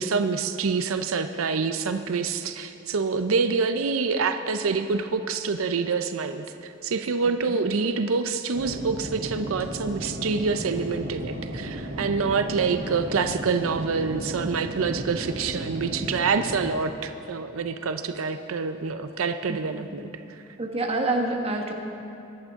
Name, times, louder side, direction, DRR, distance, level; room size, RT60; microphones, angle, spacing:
voice 1, 0.0-20.1, right 4 dB, 85° right, 8 dB, 0.6 m, -26 dB
sound 1, 8.5-16.7, equal, 70° right, 1.6 m, -35 dB
voice 2, 19.5-19.8 20.6-21.7, right 2 dB, 30° right, 1 dB, 1.4 m, -27 dB
24.0 x 11.5 x 3.6 m, 2.7 s
head